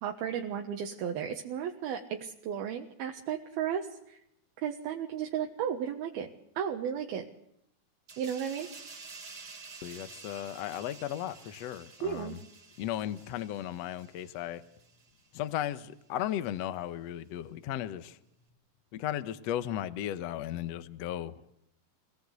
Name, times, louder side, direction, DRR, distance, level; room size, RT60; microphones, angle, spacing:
voice 1, 0.0-4.2 4.6-6.3 6.6-7.3 8.2-8.7 12.0-12.4, right 8 dB, 80° right, 2 dB, 3.3 m, -34 dB
sound 1, 8.1-15.3 15.6-15.8, right 4 dB, 35° right, 3.9 m, -50 dB
voice 2, 9.8-12.4 12.8-14.6 15.3-18.2 18.9-21.4, left 12 dB, 70° left, 12 dB, 1.7 m, -35 dB
26.0 x 18.0 x 8.3 m, 0.79 s
omnidirectional pair, 4.3 m